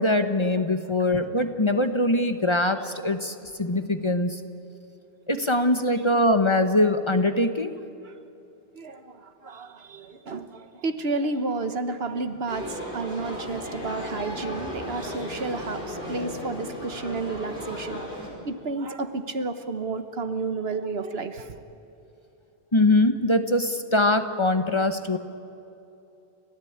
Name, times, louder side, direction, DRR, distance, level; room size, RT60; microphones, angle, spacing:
voice 1, 0.0-4.4 5.3-7.7 22.7-25.2, left 1 dB, 30° left, 8 dB, 1.0 m, -22 dB
voice 2, 8.7-18.0 18.5-21.6, right 3 dB, 70° right, 9 dB, 1.4 m, -31 dB
sound 1, 12.5-18.3, left 1 dB, 50° left, 4.9 m, -35 dB
30.0 x 13.5 x 8.7 m, 2.8 s
omnidirectional pair, 1.1 m